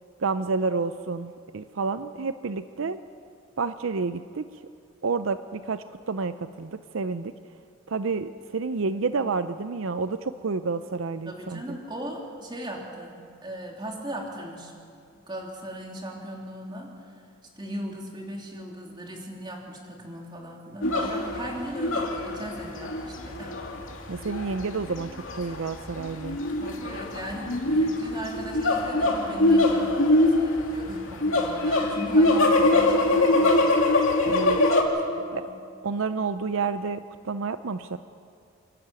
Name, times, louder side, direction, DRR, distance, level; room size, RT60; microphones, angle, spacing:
voice 1, 0.2-3.0 3.6-4.4 5.0-7.3 7.9-11.8 24.1-26.4 34.3-34.6 35.3-35.4 35.8-38.0, right 4 dB, 75° right, 11 dB, 0.6 m, -29 dB
voice 2, 11.3-14.7 15.1-17.2 17.6-23.6 26.6-33.9 35.1-35.6, right 1 dB, 20° right, -1 dB, 3.1 m, -38 dB
sound 1, 20.8-34.8, left 2 dB, 70° left, 2.7 m, -23 dB
28.5 x 12.0 x 8.9 m, 2.4 s
head